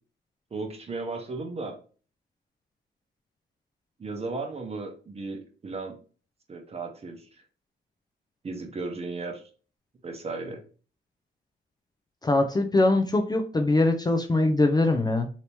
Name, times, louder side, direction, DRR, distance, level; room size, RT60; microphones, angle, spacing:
voice 1, 0.5-1.8 4.0-6.0 6.5-7.2 8.4-9.4 10.0-10.6, right 3 dB, 30° right, 4 dB, 0.9 m, -35 dB
voice 2, 12.2-15.3, left 2 dB, 20° left, 3 dB, 0.5 m, -22 dB
2.9 x 2.8 x 3.3 m, 0.39 s
cardioid pair, 90°, 20 cm